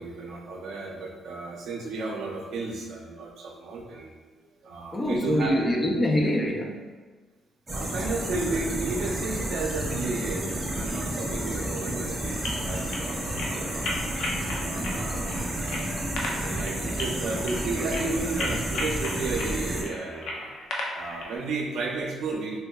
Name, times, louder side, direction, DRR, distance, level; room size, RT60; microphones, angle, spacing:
voice 1, 0.0-4.1 4.4-5.6 7.7-13.9 14.5-15.9 16.3-20.6 20.9-22.6, right 3 dB, 75° right, -1 dB, 0.5 m, -33 dB
voice 2, 4.9-6.9 20.9-21.0, left 1 dB, 25° left, 1 dB, 0.5 m, -25 dB
sound 1, 7.7-19.8, right 1 dB, 25° right, 0.7 m, -31 dB
sound 2, 12.3-21.4, left 2 dB, 85° left, 0.5 m, -36 dB
3.4 x 2.8 x 2.3 m, 1.4 s
cardioid pair, 90°, 0 cm